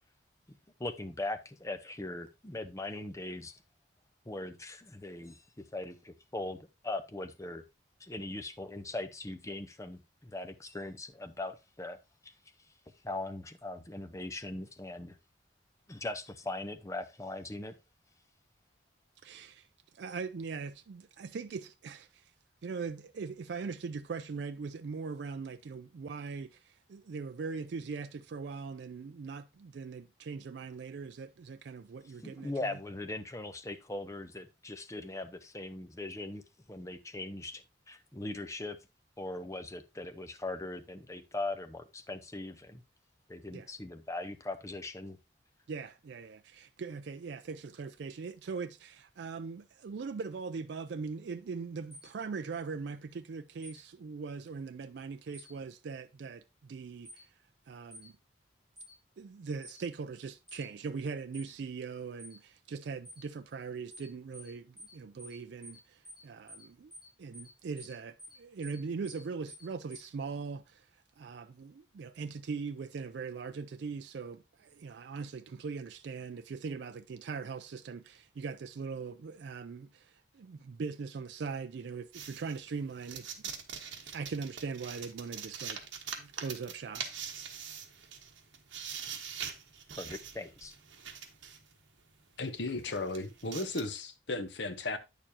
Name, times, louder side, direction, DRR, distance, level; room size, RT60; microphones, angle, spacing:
voice 1, 0.8-3.5 4.3-5.4 5.7-7.6 8.0-12.0 12.2-12.3 13.0-15.2 15.9-17.7 32.2-36.4 36.7-38.8 39.2-42.8 43.3-45.2 90.0-90.7, left 2 dB, 15° left, 0.6 m, -40 dB
voice 2, 19.2-19.7 19.9-22.3 22.6-32.8 43.5-43.7 45.7-57.4 57.7-58.2 59.2-66.9 67.2-83.3 84.1-85.8 86.2-87.1, right 5 dB, 60° right, 0.3 m, -41 dB
sound 1, 51.9-52.1 53.6-53.8 55.3-55.5 57.0-57.2 57.9-58.1 58.8-58.9 59.6-59.8 60.5-60.6 61.3-61.5 62.2-62.4 63.0-63.2 63.9-64.1 64.3-64.5 64.8-64.9 65.2-65.4 65.6-65.8 66.0-66.2 66.5-66.6 66.9-67.1 67.3-67.5 67.8-67.9 68.2-68.4 68.6-68.8 69.0-69.2 69.5-69.6 69.9-70.1, equal, 5° right, 3.7 m, -50 dB
sound 2, 82.1-91.7 92.4-92.5 92.8-93.8, right 7 dB, 75° right, 1.3 m, -43 dB
voice 3, 92.4-95.0, left 2 dB, 65° left, 0.9 m, -35 dB
8.8 x 6.7 x 2.8 m
head